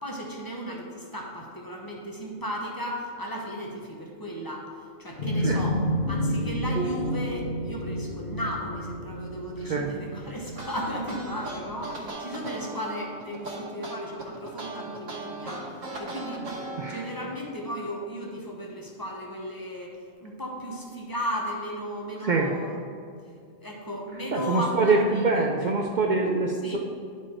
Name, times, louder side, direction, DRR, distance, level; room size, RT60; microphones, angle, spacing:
voice 1, 0.0-4.6 5.0-5.8 6.1-23.2 23.6-25.7 26.6-26.8, equal, 20° left, -1 dB, 1.0 m, -35 dB
sound 1, 5.2-11.8, equal, 50° left, 1.0 m, -30 dB
sound 2, 10.4-17.2, right 2 dB, 85° right, 1.5 m, -38 dB
voice 2, 24.3-26.8, right 3 dB, 60° right, 1 dB, 0.5 m, -24 dB
10.0 x 4.5 x 4.4 m, 2.2 s
omnidirectional pair, 1.3 m